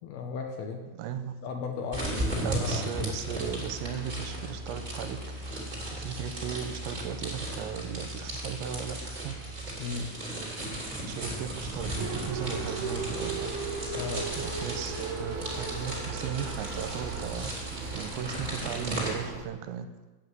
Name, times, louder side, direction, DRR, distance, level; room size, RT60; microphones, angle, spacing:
voice 1, 0.0-0.8 1.4-2.9 9.8-10.1 14.0-14.3, left 5 dB, 75° left, 2 dB, 2.5 m, -35 dB
voice 2, 1.0-1.4 2.4-5.5 5.9-9.4 11.1-13.6 14.4-17.6 17.9-19.9, right 8 dB, 85° right, 9 dB, 2.9 m, -36 dB
sound 1, 1.9-19.1, right 1 dB, 15° right, 1.7 m, -36 dB
sound 2, 3.0-18.0, right 1 dB, 35° right, 2.1 m, -43 dB
sound 3, 12.0-19.4, right 4 dB, 65° right, 1.6 m, -37 dB
8.9 x 7.9 x 7.6 m, 1.2 s
omnidirectional pair, 5.3 m